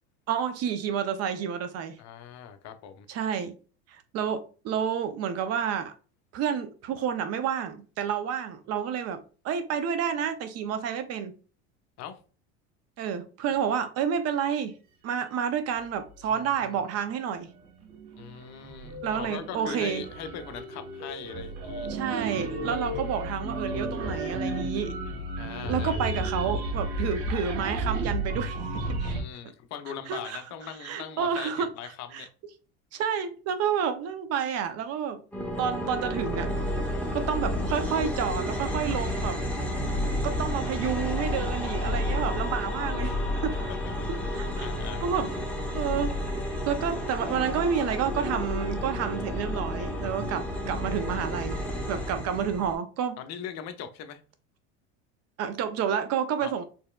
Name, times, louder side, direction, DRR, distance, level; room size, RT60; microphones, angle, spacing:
voice 1, 0.3-2.0 3.1-3.5 3.9-5.9 6.3-11.3 13.0-14.8 15.0-17.5 19.0-20.0 21.9-24.9 25.7-29.2 30.1-30.4 30.8-31.7 32.1-32.3 32.9-35.2 35.6-36.5 37.1-39.4 40.2-43.2 43.4-43.7 44.1-44.7 45.0-45.3 45.7-46.1 46.7-51.6 51.9-53.2 55.4-56.6, right 7 dB, 45° right, 0.6 m, -30 dB
voice 2, 2.0-3.1 12.0-12.2 18.2-21.9 25.4-26.0 29.0-32.3 43.5-43.8 44.6-45.1 51.9-52.2 53.2-54.2 56.4-56.6, left 8 dB, 50° left, 0.7 m, -40 dB
sound 1, 16.1-16.8 17.4-29.2, right 1 dB, 75° right, 1.7 m, -33 dB
sound 2, 35.3-52.7, left 1 dB, 5° left, 0.9 m, -31 dB
4.3 x 3.2 x 2.3 m
supercardioid pair, 115°, 35 cm